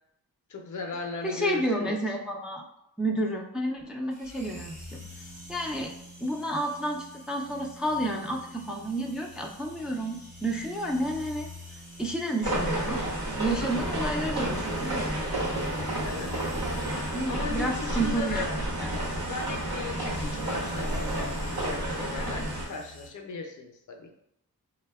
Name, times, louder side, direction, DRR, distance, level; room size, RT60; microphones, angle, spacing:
voice 1, 0.5-2.2 16.0-16.4 17.0-18.6 19.1-24.1, left 3 dB, 55° left, 4 dB, 0.5 m, -38 dB
voice 2, 1.2-2.6 3.0-5.0 5.5-5.9 6.2-8.4 8.7-11.5 12.0-13.0 13.4-15.1 17.1-18.4 18.8-18.9, right 1 dB, ahead, 1 dB, 0.3 m, -30 dB
sound 1, 4.1-23.1, equal, 20° right, 0.9 m, -46 dB
sound 2, 12.4-22.7, right 1 dB, 75° right, 1.0 m, -31 dB
3.3 x 2.1 x 2.2 m, 0.78 s
cardioid pair, 45°, 37 cm